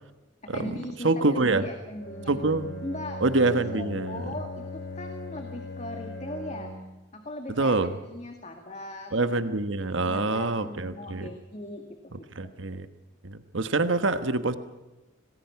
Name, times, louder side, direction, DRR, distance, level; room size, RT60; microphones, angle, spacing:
voice 1, 0.4-2.4 2.8-6.8 7.1-7.8 8.0-9.1 10.0-12.3, left 1 dB, 35° left, 5 dB, 2.1 m, -39 dB
voice 2, 1.0-1.7 2.3-2.7 3.2-4.3 7.5-7.9 9.1-11.3 12.3-12.9 13.2-14.6, right 3 dB, 75° right, 10 dB, 1.3 m, -25 dB
Bowed string instrument, 1.9-7.0, left 1 dB, 75° left, 6.8 m, -39 dB
27.0 x 19.5 x 5.9 m, 1.1 s
head